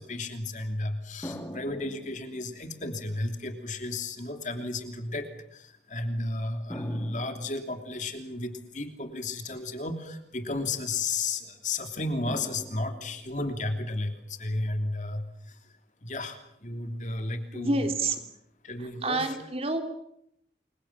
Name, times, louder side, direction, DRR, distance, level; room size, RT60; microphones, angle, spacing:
voice 1, 0.0-15.6 16.0-17.8 18.6-19.3, left 2 dB, 45° left, 6 dB, 3.1 m, -33 dB
sound 1, 1.2-3.0 3.9-4.0 6.7-8.4 12.3-13.6, left 1 dB, 15° left, 2.7 m, -43 dB
voice 2, 17.5-18.2 18.8-19.8, right 2 dB, 35° right, 5 dB, 3.4 m, -28 dB
29.0 x 24.0 x 7.4 m, 0.76 s
head